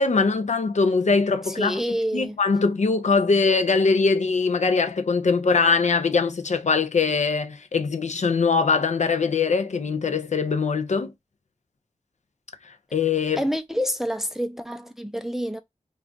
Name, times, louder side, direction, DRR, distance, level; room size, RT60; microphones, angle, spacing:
voice 1, 0.0-1.8 2.1-11.1 12.9-13.4, left 4 dB, 65° left, 0.5 m, -22 dB
voice 2, 1.4-2.4 13.4-15.6, equal, 5° right, 0.4 m, -27 dB
2.4 x 2.3 x 3.6 m
wide cardioid pair, 65°, 13 cm